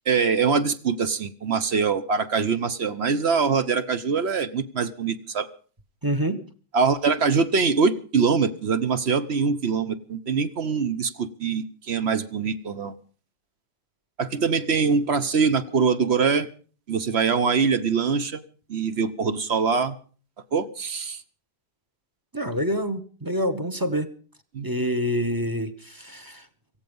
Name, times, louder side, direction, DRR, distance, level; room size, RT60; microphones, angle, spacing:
voice 1, 0.1-5.5 6.7-12.9 14.2-16.5 16.9-18.4 18.7-20.0 20.5-21.2 24.5-24.7, right 5 dB, 45° right, 12 dB, 1.1 m, -23 dB
voice 2, 6.0-6.4 22.3-24.1 24.6-26.5, equal, 15° right, 9 dB, 1.0 m, -26 dB
17.5 x 15.0 x 5.4 m, 0.42 s
omnidirectional pair, 1.8 m